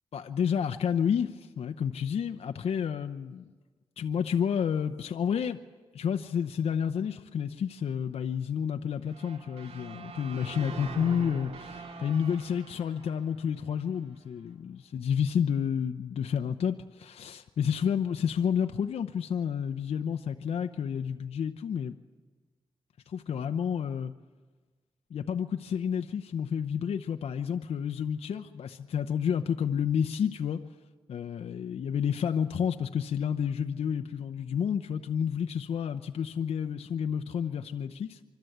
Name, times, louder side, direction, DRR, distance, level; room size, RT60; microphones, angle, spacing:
voice 1, 0.1-3.5 4.0-5.6 5.9-21.9 23.1-24.1 25.1-30.6 31.1-38.2, left 7 dB, 80° left, 7 dB, 0.8 m, -30 dB
sound 1, 9.1-14.1, right 4 dB, 90° right, 2.7 m, -43 dB
25.0 x 25.0 x 8.0 m, 1.3 s
cardioid pair, 85°, 10 cm